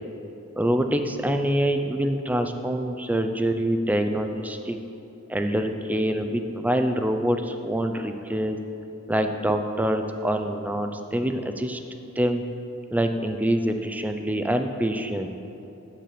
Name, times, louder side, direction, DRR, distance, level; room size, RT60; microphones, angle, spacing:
voice 1, 0.6-4.8 5.3-8.6 9.1-11.8 12.2-12.4 12.9-15.3, right 1 dB, 5° right, 6 dB, 0.4 m, -25 dB
7.5 x 7.5 x 6.6 m, 2.9 s
head